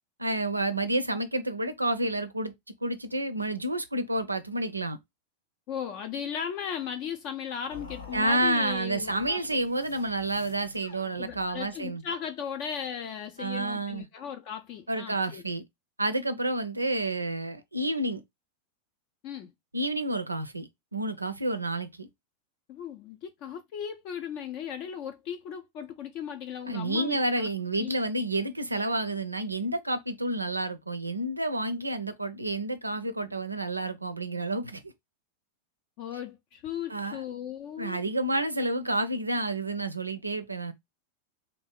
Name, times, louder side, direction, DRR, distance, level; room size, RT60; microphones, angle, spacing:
voice 1, 0.2-2.5 2.8-5.0 8.1-12.0 13.4-14.0 14.9-15.6 16.0-18.2 19.7-22.1 26.7-34.9 36.9-37.2 37.8-40.7, right 1 dB, 85° right, 0.4 m, -30 dB
voice 2, 5.7-9.6 11.2-15.4 19.2-19.5 22.7-27.5 27.8-27.9 36.0-38.1, left 8 dB, 40° left, 0.4 m, -37 dB
sound 1, 7.7-11.8, left 3 dB, 70° left, 0.8 m, -48 dB
2.7 x 2.3 x 3.6 m
figure-of-eight pair, 90°, 0 cm